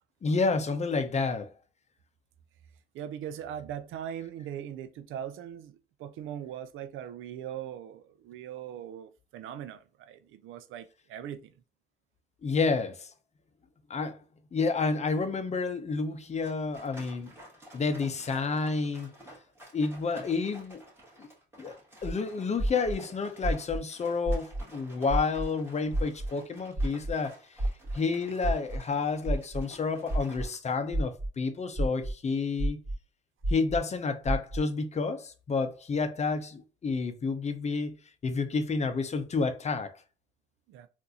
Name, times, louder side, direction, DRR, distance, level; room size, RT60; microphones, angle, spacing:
voice 1, 0.2-1.5 12.4-13.1 13.9-14.2 14.5-17.3 17.7-19.1 19.7-20.8 21.2-21.3 21.6-21.7 22.0-27.4 27.9-32.8 33.5-38.0 38.2-39.9, left 4 dB, 35° left, 0.6 m, -30 dB
voice 2, 2.9-11.5 40.7-40.9, right 10 dB, 85° right, 0.5 m, -40 dB
sound 1, 16.4-30.6, right 1 dB, 10° right, 1.9 m, -52 dB
sound 2, 22.0-22.1 22.6-22.9 23.4-23.8 24.2-24.6 25.1-25.4 25.9-26.3 26.8-27.1 27.6-27.9 28.4-28.8 29.2-29.6 30.1-30.4 30.9-31.3 31.8-32.1 32.6-32.9 33.4-33.8 34.2-34.6, right 1 dB, 40° right, 2.0 m, -29 dB
3.8 x 2.6 x 2.8 m
cardioid pair, 90°, 20 cm